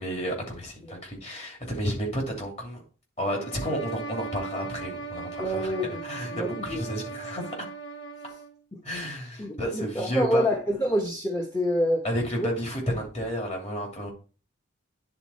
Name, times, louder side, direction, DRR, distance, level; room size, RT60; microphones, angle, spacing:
voice 1, 0.0-2.8 3.2-5.7 6.0-7.6 8.8-10.4 12.0-14.1, equal, 30° left, 2.7 m, -31 dB
sound 1, 3.2-8.6, right 4 dB, 65° left, 3.4 m, -38 dB
voice 2, 5.4-6.0 6.3-6.8 8.7-8.8 9.4-12.0 12.4-12.5, equal, 15° left, 1.1 m, -27 dB
9.8 x 4.2 x 4.2 m
head